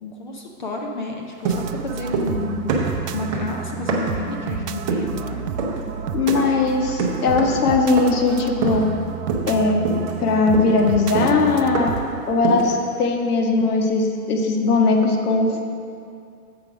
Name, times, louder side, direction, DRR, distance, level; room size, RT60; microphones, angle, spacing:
voice 1, 0.0-2.6 3.1-5.5, left 3 dB, 35° left, 1 dB, 0.4 m, -30 dB
sound 1, 1.4-2.4 2.7-4.3 4.9-5.2 5.6-5.9 6.3-6.6 7.0-7.7 8.0-8.3 8.6-9.0 9.3-9.6 9.8-12.1 12.4-12.8, right 4 dB, 20° right, 0.6 m, -26 dB
sound 2, 1.5-12.1, right 9 dB, 80° right, 0.6 m, -31 dB
voice 2, 6.1-9.2 9.5-9.8 10.2-11.9 12.3-15.6, left 3 dB, 70° left, 3 dB, 1.3 m, -19 dB
7.6 x 5.2 x 5.9 m, 2.4 s
hypercardioid pair, 155°, 47 cm